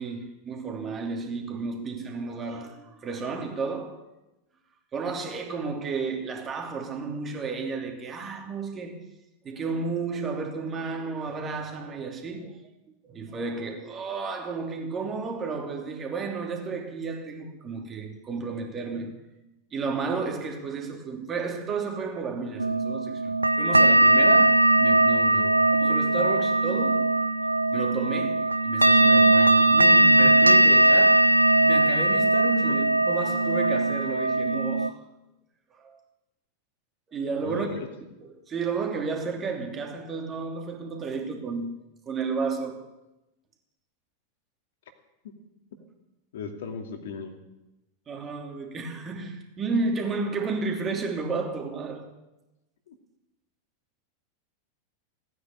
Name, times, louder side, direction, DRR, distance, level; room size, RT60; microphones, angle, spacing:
voice 1, 0.0-4.0 4.9-9.0 9.4-12.6 13.0-19.2 19.7-27.1 27.7-31.3 31.6-35.0 35.7-36.0 37.1-37.8 38.2-41.8 42.1-42.9 48.1-52.1, right 4 dB, 25° right, 2.9 m, -32 dB
sound 1, 22.6-34.9, right 1 dB, 85° right, 0.5 m, -20 dB
voice 2, 37.4-37.9 46.3-47.4 52.9-53.0, left 5 dB, 60° left, 2.4 m, -36 dB
17.0 x 9.7 x 8.8 m
figure-of-eight pair, 90°, 0 cm